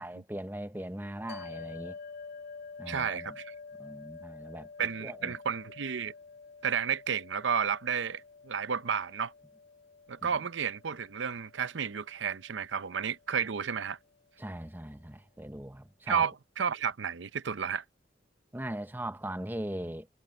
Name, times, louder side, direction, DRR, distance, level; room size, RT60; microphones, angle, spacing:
voice 1, 0.0-2.0 2.8-3.4 3.8-4.7 5.0-5.3 10.3-10.4 14.4-16.2 18.5-20.1, right 1 dB, 10° right, 0.8 m, -39 dB
sound 1, 1.3-13.8, left 4 dB, 55° left, 2.6 m, -49 dB
voice 2, 2.9-3.5 4.8-6.1 6.6-9.3 10.1-14.0 16.1-17.8, right 7 dB, 80° right, 0.6 m, -32 dB
head